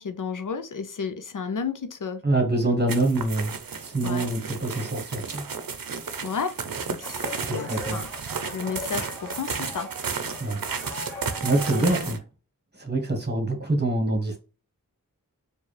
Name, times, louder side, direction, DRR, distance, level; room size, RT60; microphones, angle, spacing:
voice 1, 0.0-2.2 4.0-4.3 6.2-6.6 6.9-8.1 8.5-9.9 11.8-12.2, left 6 dB, 65° left, 0.5 m, -32 dB
voice 2, 2.2-3.5 3.8-5.4 7.5-8.0 10.4-10.6 11.4-12.2 12.8-14.4, right 2 dB, 30° right, 1.4 m, -25 dB
sound 1, 2.9-12.2, right 5 dB, 80° right, 0.6 m, -33 dB
sound 2, 7.0-12.0, left 1 dB, 5° left, 1.7 m, -40 dB
4.5 x 2.3 x 3.3 m
wide cardioid pair, 45°, 34 cm